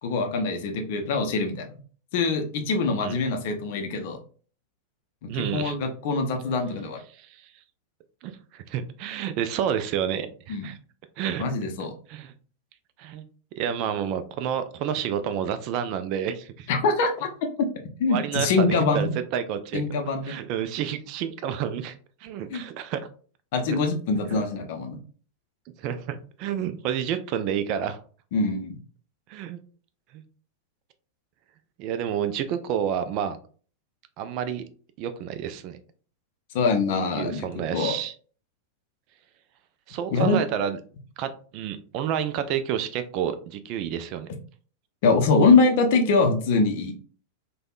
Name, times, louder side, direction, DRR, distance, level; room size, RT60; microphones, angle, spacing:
voice 1, 0.0-1.8 2.1-4.2 5.3-7.0 10.5-10.7 11.4-11.9 16.7-17.3 18.0-19.1 19.7-20.3 22.5-22.6 23.5-25.0 28.3-28.7 36.5-37.5 37.7-38.0 40.1-40.4 45.0-46.9, left 4 dB, 50° left, 4 dB, 0.5 m, -23 dB
voice 2, 5.3-5.8 7.1-7.5 8.2-10.8 11.2-11.5 12.1-12.3 13.0-13.3 13.6-16.7 18.1-19.8 20.2-22.0 22.2-23.1 23.6-23.8 24.3-24.4 25.8-28.0 29.3-29.6 30.1-30.2 31.8-33.4 34.2-34.7 35.0-35.8 37.2-38.1 39.9-40.8 41.2-44.3, right 9 dB, 40° right, 10 dB, 0.3 m, -29 dB
3.3 x 2.2 x 2.4 m, 0.42 s
figure-of-eight pair, 90°, 0 cm